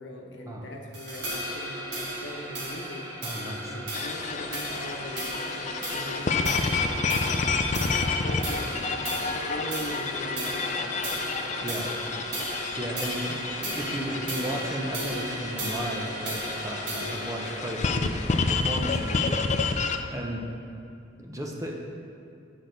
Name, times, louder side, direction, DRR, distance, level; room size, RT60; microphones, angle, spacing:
voice 1, 0.0-3.3 3.6-7.2 7.6-11.3 13.1-13.4 13.6-14.5, left 1 dB, 75° left, 0 dB, 1.0 m, -41 dB
sound 1, 0.9-19.5, equal, 60° right, 1.5 m, -35 dB
voice 2, 3.2-3.8 11.6-11.9 12.8-13.2 13.6-19.6 20.1-20.4 21.2-21.8, equal, 15° right, 0 dB, 0.7 m, -34 dB
sound 2, 3.9-20.0, left 4 dB, 40° left, 0.4 m, -30 dB
8.0 x 6.4 x 3.9 m, 2.6 s
head